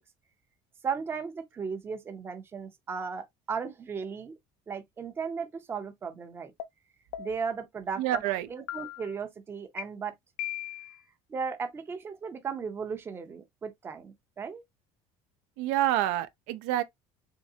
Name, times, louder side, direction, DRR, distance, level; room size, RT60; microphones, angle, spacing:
voice 1, 0.8-4.3 4.7-6.5 7.2-8.2 8.5-10.1 11.3-14.6, right 6 dB, 20° right, 0.5 m, -36 dB
sound 1, 6.6-6.7 7.1-7.5 8.1-8.2 8.7-9.1 9.8-9.9 10.4-11.0, left 13 dB, 85° left, 0.5 m, -37 dB
voice 2, 8.0-8.5 15.6-16.8, right 13 dB, 85° right, 0.5 m, -27 dB
3.7 x 3.1 x 2.7 m
cardioid pair, 160°, 12 cm